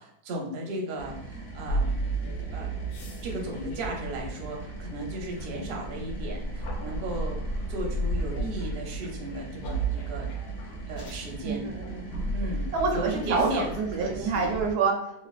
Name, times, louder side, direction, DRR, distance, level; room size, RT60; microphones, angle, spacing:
voice 1, 0.0-2.0 2.5-2.7 3.2-10.3 10.9-11.7 12.3-12.6 12.9-14.5, right 1 dB, 55° right, -1 dB, 0.7 m, -35 dB
sound 1, 1.0-14.7, right 2 dB, 40° left, 0.7 m, -41 dB
sound 2, 1.7-14.7, right 2 dB, 75° left, 1.2 m, -34 dB
voice 2, 11.4-12.3 12.7-15.3, right 4 dB, 90° right, 1 dB, 1.2 m, -28 dB
3.2 x 2.2 x 2.3 m, 0.74 s
omnidirectional pair, 1.6 m